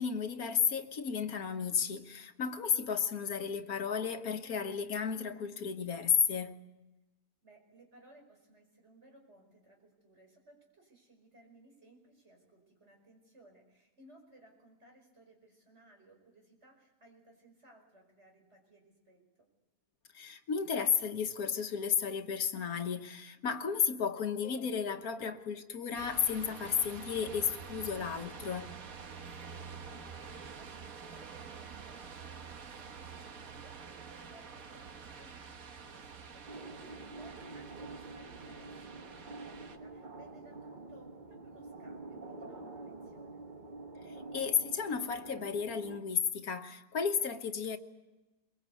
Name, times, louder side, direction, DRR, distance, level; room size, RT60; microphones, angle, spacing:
voice 1, 0.0-6.6 20.1-28.7 44.0-47.8, left 7 dB, 85° left, 1.6 m, -33 dB
voice 2, 7.4-19.2 29.5-43.4, right 1 dB, 50° right, 5.6 m, -61 dB
sound 1, 25.9-39.8, right 5 dB, 70° right, 1.7 m, -48 dB
sound 2, 36.5-46.0, right 2 dB, 35° right, 1.4 m, -47 dB
23.0 x 21.5 x 8.3 m
omnidirectional pair, 1.5 m